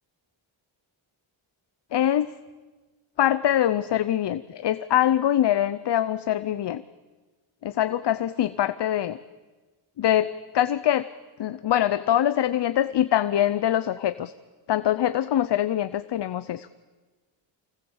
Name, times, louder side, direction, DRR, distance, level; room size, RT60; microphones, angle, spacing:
voice 1, 1.9-2.3 3.2-6.8 7.6-9.2 10.0-11.1 11.4-14.3 14.7-16.7, left 11 dB, 60° left, 14 dB, 0.7 m, -23 dB
25.5 x 18.5 x 7.2 m, 1.3 s
cardioid pair, 110°, 48 cm